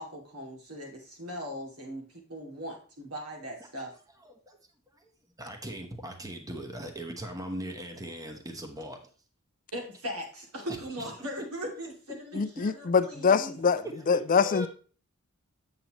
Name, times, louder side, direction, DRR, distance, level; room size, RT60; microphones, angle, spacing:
voice 1, 0.0-3.9 9.7-13.6, equal, 80° right, 2.5 m, -39 dB
voice 2, 3.6-4.6 5.4-9.0 10.7-11.5 12.3-12.8 13.6-14.7, equal, 15° right, 1.0 m, -40 dB
voice 3, 12.3-14.7, left 5 dB, 40° left, 0.4 m, -25 dB
8.4 x 7.5 x 3.0 m
head